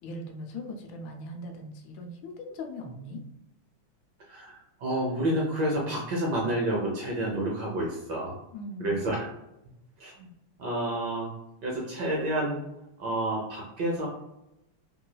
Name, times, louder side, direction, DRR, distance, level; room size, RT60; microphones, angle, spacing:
voice 1, 0.0-3.2 8.5-9.1, left 1 dB, 75° left, 3 dB, 1.2 m, -40 dB
voice 2, 4.3-8.4 8.8-9.2 10.0-10.3 10.6-11.3 11.6-12.6 13.0-14.1, right 1 dB, 70° right, -2 dB, 1.0 m, -29 dB
3.1 x 3.0 x 2.2 m, 0.88 s
omnidirectional pair, 2.4 m